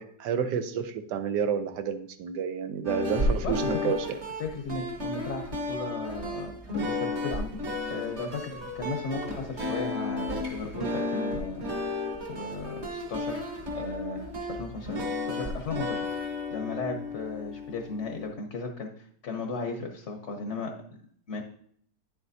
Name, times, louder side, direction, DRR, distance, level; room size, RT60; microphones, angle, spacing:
voice 1, 0.0-4.2, right 7 dB, 75° right, 9 dB, 1.3 m, -30 dB
sound 1, 2.8-18.3, left 2 dB, 40° right, 1.6 m, -33 dB
voice 2, 3.4-3.9 4.4-12.0 12.3-13.4 13.7-20.7 21.3-21.4, left 3 dB, 50° left, 4 dB, 1.0 m, -36 dB
9.6 x 7.5 x 2.7 m, 0.64 s
omnidirectional pair, 1.9 m